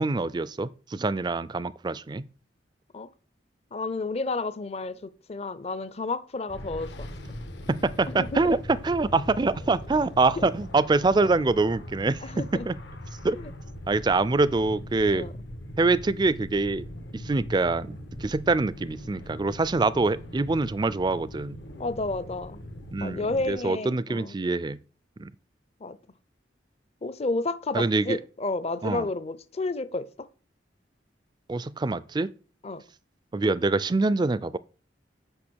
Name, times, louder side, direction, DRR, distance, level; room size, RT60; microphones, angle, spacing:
voice 1, 0.0-2.3 7.7-12.8 13.2-13.4 13.9-15.3 15.8-16.8 17.1-21.6 22.9-24.8 25.2-25.3 27.7-28.2 28.8-29.1 31.5-32.3 33.3-34.6, right 3 dB, 25° right, 0.4 m, -25 dB
voice 2, 3.7-7.1 8.1-8.5 10.4-10.5 12.2-12.7 13.3-13.5 15.1-15.4 21.8-22.6 23.0-24.3 25.8-26.0 27.0-30.3 32.6-32.8, left 3 dB, 35° left, 0.6 m, -31 dB
sound 1, 6.5-23.5, left 1 dB, 80° left, 1.4 m, -41 dB
8.7 x 5.6 x 6.3 m
head